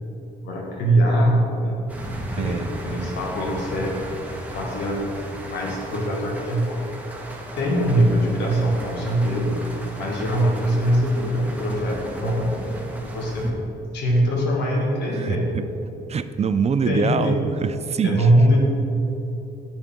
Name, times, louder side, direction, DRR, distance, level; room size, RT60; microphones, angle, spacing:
voice 1, 0.4-1.8 2.3-4.0 4.5-5.1 5.5-6.9 7.6-9.7 10.0-12.7 13.0-13.5 13.9-15.5 16.9-17.4 18.0-18.6, right 1 dB, 85° left, -1 dB, 1.7 m, -22 dB
sound 1, 1.9-13.5, right 1 dB, 10° right, 1.6 m, -36 dB
voice 2, 2.3-2.7 15.1-15.7 16.1-18.3, right 6 dB, 40° right, 12 dB, 0.4 m, -24 dB
8.8 x 8.1 x 3.7 m, 2.9 s
supercardioid pair, 70°, 17 cm